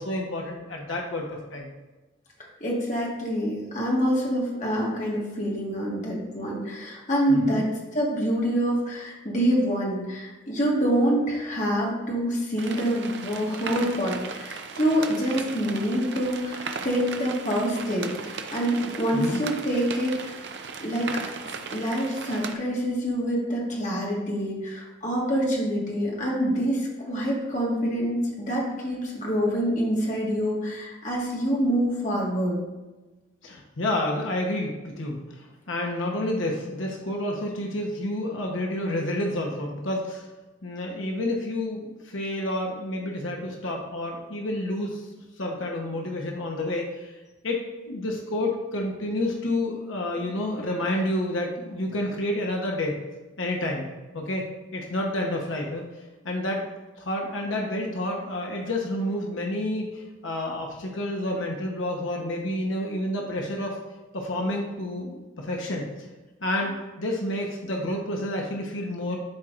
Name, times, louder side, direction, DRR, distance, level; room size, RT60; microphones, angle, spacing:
voice 1, 0.0-1.7 7.3-7.6 19.1-19.4 33.4-35.2 35.7-40.3 40.6-45.1 45.4-47.1 47.4-53.0 53.4-53.9 54.1-54.4 54.7-55.8 56.2-56.7 57.0-63.8 64.1-65.9 66.4-69.2, left 1 dB, 85° left, 0 dB, 1.0 m, -29 dB
voice 2, 2.6-20.4 20.8-21.2 21.7-32.6, equal, 40° left, -3 dB, 1.6 m, -26 dB
sound 1, 12.6-22.5, right 5 dB, 60° right, 0.6 m, -37 dB
12.0 x 4.5 x 2.5 m, 1.2 s
head